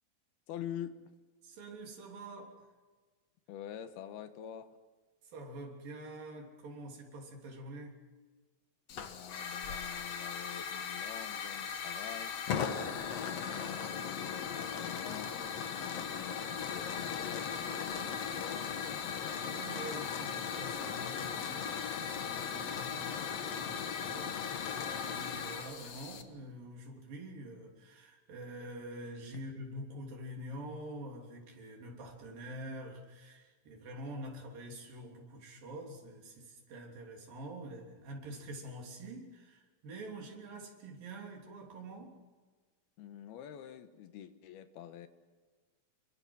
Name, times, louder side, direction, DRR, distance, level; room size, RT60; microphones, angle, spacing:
voice 1, 0.5-1.0 3.5-4.7 8.9-12.3 13.1-15.3 15.7-18.7 43.0-45.1, left 10 dB, 90° left, 9 dB, 3.2 m, -46 dB
voice 2, 1.4-2.6 5.2-8.0 19.5-42.2, right 1 dB, 65° right, 0 dB, 5.1 m, -46 dB
Hiss / Fire, 8.9-26.2, left 7 dB, 55° left, 2.1 m, -38 dB
27.0 x 23.0 x 6.3 m, 1.4 s
omnidirectional pair, 4.3 m